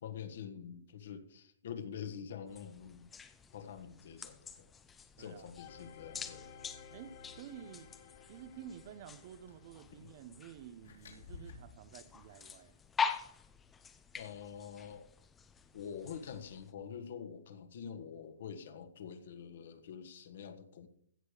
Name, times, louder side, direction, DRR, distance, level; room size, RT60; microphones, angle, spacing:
voice 1, 0.0-3.1 3.5-4.6 5.2-6.6 10.0-10.1 14.1-15.1 15.7-20.9, left 7 dB, 55° left, 1.4 m, -46 dB
sound 1, 2.5-16.7, left 6 dB, 10° left, 0.6 m, -45 dB
voice 2, 5.2-5.5 6.9-7.9 8.3-12.7, right 9 dB, 35° right, 0.7 m, -51 dB
sound 2, 5.6-10.4 10.9-11.0, left 6 dB, 40° left, 1.7 m, -56 dB
sound 3, 9.5-9.7 10.8-12.8, left 4 dB, 75° left, 2.7 m, -53 dB
15.5 x 6.7 x 5.0 m
hypercardioid pair, 170°, 0 cm